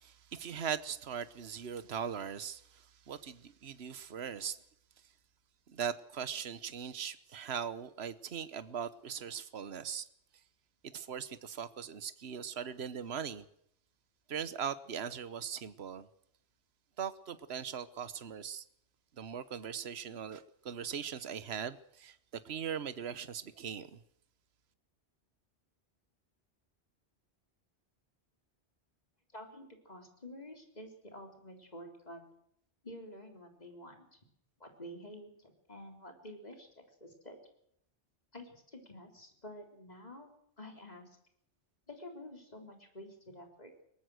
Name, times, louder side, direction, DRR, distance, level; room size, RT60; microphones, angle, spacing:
voice 1, 0.0-4.6 5.7-10.1 10.8-13.4 14.3-16.1 17.0-18.6 19.2-24.0, right 7 dB, 65° right, 14 dB, 1.3 m, -40 dB
voice 2, 29.3-32.2 32.8-34.2 34.6-36.7 37.0-37.4 38.3-40.3 40.6-41.1 41.9-43.8, left 1 dB, 35° left, 3 dB, 4.0 m, -49 dB
22.5 x 19.5 x 6.4 m, 0.71 s
omnidirectional pair, 1.1 m